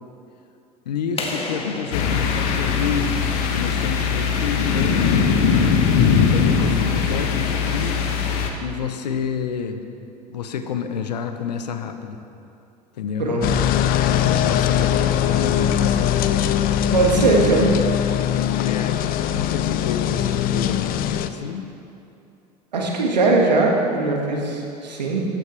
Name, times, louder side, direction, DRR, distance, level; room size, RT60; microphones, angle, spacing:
voice 1, 0.8-3.2 3.5-5.2 6.2-8.0 8.6-9.8 10.3-12.2 13.0-13.3 14.0-16.2 17.0-17.6 18.4-21.7, left 7 dB, 80° left, 8 dB, 0.9 m, -29 dB
sound 1, 1.2-3.8, left 2 dB, 25° left, 1.8 m, -33 dB
sound 2, 1.9-8.5, left 6 dB, 65° left, 1.3 m, -20 dB
sound 3, 13.4-21.3, left 10 dB, 45° left, 0.6 m, -21 dB
voice 2, 16.9-17.6 22.7-25.2, right 3 dB, 85° right, -1 dB, 1.8 m, -20 dB
14.5 x 10.5 x 3.4 m, 2.6 s
hypercardioid pair, 80°, 21 cm